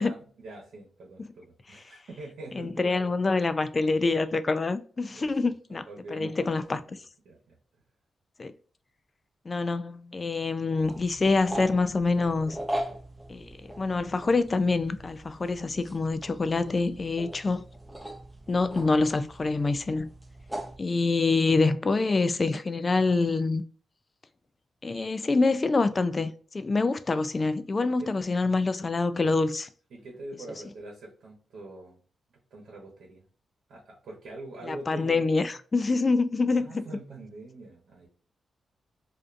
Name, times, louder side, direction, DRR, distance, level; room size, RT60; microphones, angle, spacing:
voice 1, 0.0-3.1 5.1-5.3 5.7-6.5 6.9-7.0 7.2-7.6 27.8-28.1 29.9-32.0 32.5-33.2 33.7-35.5 36.5-38.1, right 2 dB, 75° right, 0.9 m, -44 dB
voice 2, 2.5-5.8 6.1-6.8 8.4-8.5 9.5-12.6 13.3-17.6 18.5-20.1 20.8-23.6 24.8-29.7 34.6-36.8, left 3 dB, 35° left, 0.3 m, -26 dB
sound 1, 10.8-20.8, right 1 dB, 5° right, 0.6 m, -40 dB
2.5 x 2.3 x 2.5 m
cardioid pair, 85°, 0 cm